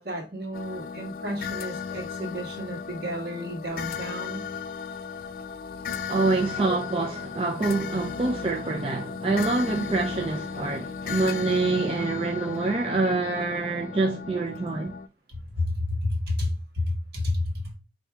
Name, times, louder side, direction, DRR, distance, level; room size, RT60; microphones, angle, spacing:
voice 1, 0.0-4.4 15.3-17.8, left 1 dB, 65° right, 1.3 m, -31 dB
sound 1, 0.5-15.1, left 6 dB, 55° left, 0.3 m, -35 dB
voice 2, 6.1-14.9, right 3 dB, 30° right, 0.4 m, -26 dB
4.5 x 2.7 x 3.3 m
head